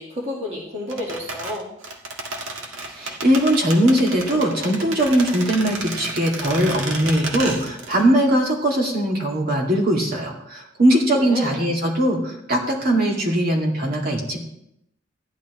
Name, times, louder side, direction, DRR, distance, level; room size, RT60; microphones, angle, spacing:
voice 1, 0.0-1.7 11.2-11.6, left 1 dB, 35° right, -3 dB, 1.9 m, -30 dB
sound 1, 0.9-8.1 8.3-8.4, right 2 dB, 80° right, 1.8 m, -31 dB
voice 2, 2.9-14.4, right 1 dB, 50° right, -1 dB, 2.3 m, -20 dB
14.0 x 10.5 x 3.1 m, 0.76 s
head